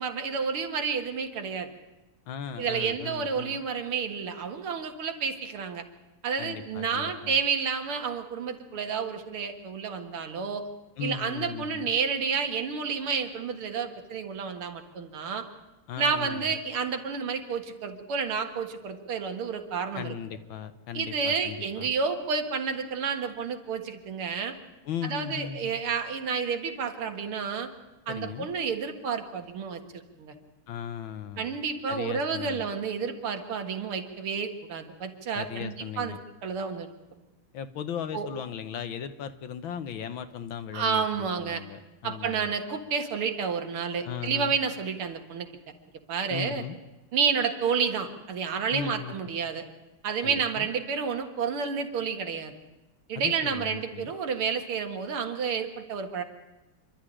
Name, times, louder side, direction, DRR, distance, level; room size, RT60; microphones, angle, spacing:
voice 1, 0.0-1.7 2.6-5.8 6.2-10.7 11.0-15.5 16.0-20.1 20.9-24.6 25.0-27.7 28.1-29.8 30.2-30.3 31.4-36.2 36.4-36.9 38.1-38.3 40.7-41.6 42.0-45.5 46.1-46.6 47.1-49.6 50.0-52.5 53.1-56.2, right 6 dB, 75° right, 6 dB, 2.5 m, -30 dB
voice 2, 2.3-3.6 6.4-7.4 11.0-11.9 15.9-16.5 19.9-21.9 24.8-25.8 28.1-28.5 30.7-31.6 31.9-32.7 35.3-36.2 37.5-42.5 44.0-44.5 46.3-46.7 48.7-49.3 50.2-50.7 53.1-54.1, left 8 dB, 65° left, 10 dB, 1.7 m, -37 dB
27.0 x 12.0 x 10.0 m, 1.0 s
omnidirectional pair, 2.4 m